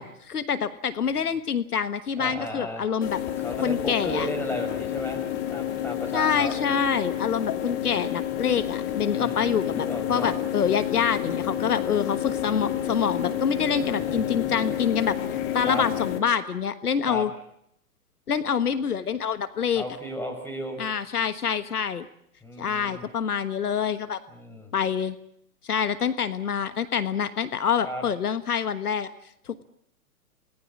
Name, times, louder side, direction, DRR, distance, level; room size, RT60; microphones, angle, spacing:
voice 1, 0.0-3.2 3.6-4.3 6.1-17.3 18.3-19.8 20.8-22.1 22.6-24.2 24.7-25.1 25.6-29.1, left 7 dB, 80° left, 13 dB, 1.4 m, -26 dB
voice 2, 2.2-2.9 3.4-5.2 5.5-6.5 9.1-10.3 13.9-14.7 15.7-15.8 17.1-17.3 19.7-20.8 22.4-23.1 24.3-24.7 27.8-28.0, equal, 5° left, 2 dB, 6.1 m, -35 dB
sound 1, 3.0-16.2, left 11 dB, 35° left, 2.8 m, -30 dB
28.5 x 19.5 x 7.5 m, 0.72 s
hypercardioid pair, 125°, 45 cm